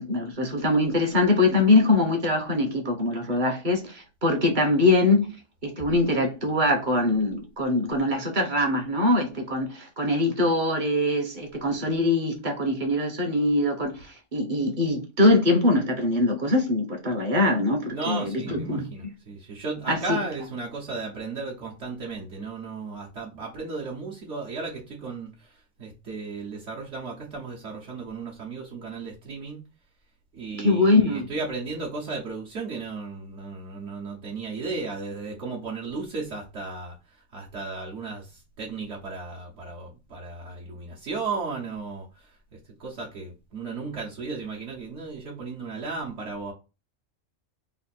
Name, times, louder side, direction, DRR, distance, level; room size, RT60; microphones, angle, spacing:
voice 1, 0.0-5.3 5.6-18.9 19.9-20.2 30.6-31.3, left 2 dB, 40° right, 1.0 m, -23 dB
voice 2, 17.9-29.6 30.3-37.0 37.3-42.3 42.8-46.5, right 4 dB, 65° right, 1.2 m, -35 dB
3.4 x 2.5 x 4.1 m
omnidirectional pair, 1.3 m